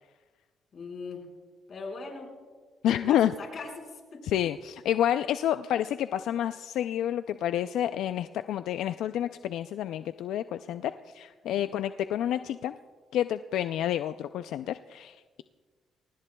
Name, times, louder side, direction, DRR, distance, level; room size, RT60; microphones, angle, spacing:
voice 1, 0.7-1.3 1.7-2.3 2.9-4.3 11.4-11.7, left 4 dB, 50° left, 1 dB, 4.7 m, -40 dB
voice 2, 2.8-3.3 4.2-12.8 13.1-15.4, left 11 dB, 85° left, 11 dB, 0.4 m, -29 dB
24.0 x 19.5 x 2.3 m, 1.4 s
cardioid pair, 90°, 0 cm